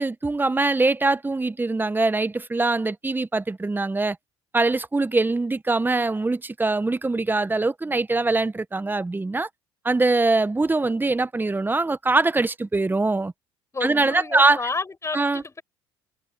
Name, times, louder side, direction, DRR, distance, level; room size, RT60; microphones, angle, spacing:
voice 1, 0.0-4.2 4.5-9.5 9.8-13.3 13.8-14.6 15.1-15.4, right 3 dB, 15° right, 1.3 m, -23 dB
voice 2, 13.7-15.6, left 3 dB, 20° left, 7.7 m, -31 dB
hypercardioid pair, 60°, 13 cm